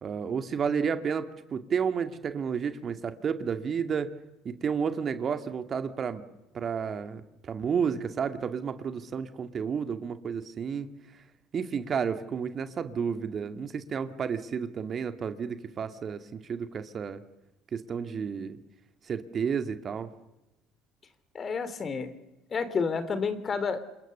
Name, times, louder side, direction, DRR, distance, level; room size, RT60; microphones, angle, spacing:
voice 1, 0.0-4.1 4.4-6.2 6.5-10.9 11.5-17.2 17.7-18.6 19.0-20.1, right 6 dB, 40° right, 9 dB, 2.1 m, -31 dB
voice 2, 21.3-22.1 22.5-23.8, left 5 dB, 35° left, 13 dB, 3.3 m, -30 dB
28.5 x 28.0 x 6.9 m, 0.95 s
hypercardioid pair, 60°, 0 cm